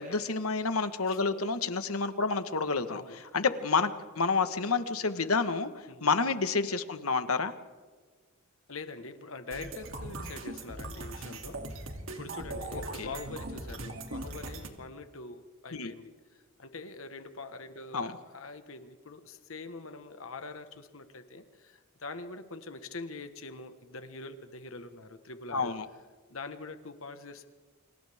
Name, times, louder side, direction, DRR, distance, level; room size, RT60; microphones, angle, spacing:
voice 1, 0.0-3.0 3.3-5.7 6.0-7.5 12.7-13.1 15.7-15.9 17.9-18.1 25.5-25.9, left 4 dB, 85° left, 9 dB, 1.5 m, -29 dB
voice 2, 2.9-3.2 5.9-6.1 8.7-25.8 26.3-27.5, left 3 dB, 65° left, 8 dB, 1.5 m, -44 dB
sound 1, 9.5-14.7, right 2 dB, 65° right, 2.9 m, -40 dB
30.0 x 26.5 x 3.7 m, 1.4 s
head